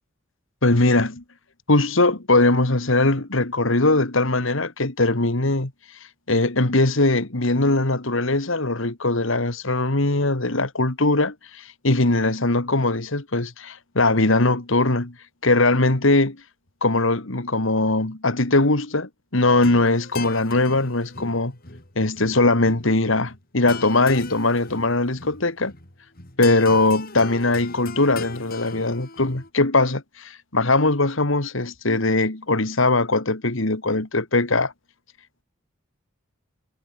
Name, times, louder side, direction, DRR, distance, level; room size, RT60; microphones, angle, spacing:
voice 1, 0.6-1.2 1.7-5.7 6.3-15.1 15.4-16.4 16.8-21.5 22.0-25.7 26.4-34.7, left 2 dB, 60° left, 2.0 m, -21 dB
sound 1, 19.4-29.5, left 4 dB, 45° left, 3.8 m, -39 dB
head